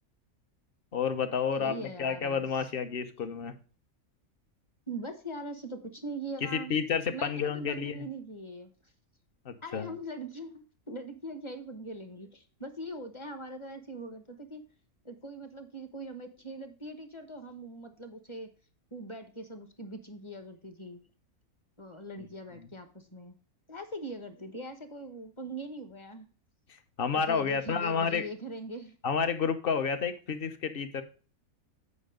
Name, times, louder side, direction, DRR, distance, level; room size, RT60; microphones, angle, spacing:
voice 1, 0.9-3.6 6.4-8.1 9.4-9.9 27.0-28.2 29.0-31.0, left 6 dB, 45° left, 9 dB, 1.0 m, -30 dB
voice 2, 1.5-2.7 4.9-6.7 7.0-8.9 9.6-14.6 15.0-18.5 18.9-21.0 21.8-23.4 23.7-26.3 27.3-29.0, right 1 dB, 20° left, 8 dB, 1.0 m, -41 dB
8.6 x 5.3 x 5.0 m, 0.37 s
omnidirectional pair, 1.5 m